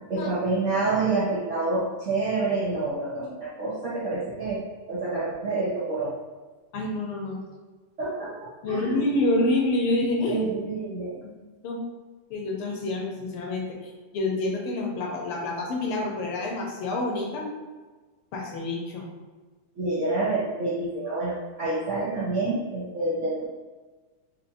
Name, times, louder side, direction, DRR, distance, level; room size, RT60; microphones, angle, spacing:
voice 1, 0.1-4.6 4.9-6.1 8.0-9.0 10.2-11.2 19.8-23.4, right 3 dB, 85° right, -9 dB, 0.6 m, -28 dB
voice 2, 6.7-7.4 8.6-10.4 11.2-11.3 11.6-11.8 12.3-17.4 18.3-19.1, left 2 dB, 80° left, -1 dB, 1.7 m, -27 dB
4.7 x 2.8 x 2.6 m, 1.3 s
omnidirectional pair, 2.4 m